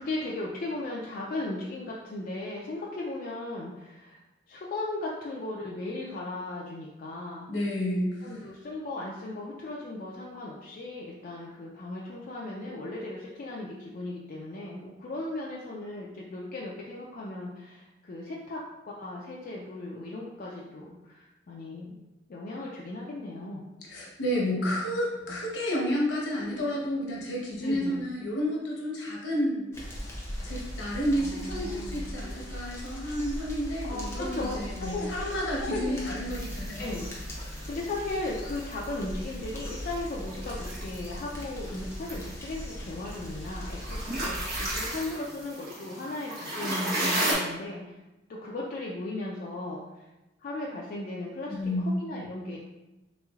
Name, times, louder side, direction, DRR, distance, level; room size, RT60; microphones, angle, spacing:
voice 1, 0.0-4.2 4.5-7.5 8.2-22.0 22.3-23.6 24.6-24.9 25.2-25.4 27.6-28.0 31.2-32.0 33.8-36.0 36.8-37.1 37.4-48.0 48.3-49.8 50.4-51.5 51.8-52.6, left 2 dB, 50° left, -3 dB, 0.4 m, -37 dB
voice 2, 7.5-8.4 23.8-29.7 30.4-36.9 51.5-51.8, equal, 75° left, -2 dB, 0.9 m, -31 dB
sound 1, 29.7-44.9, equal, 15° left, 0.6 m, -39 dB
sound 2, 36.3-47.3, right 1 dB, 55° right, 1.1 m, -35 dB
3.4 x 3.0 x 2.3 m, 1.0 s
head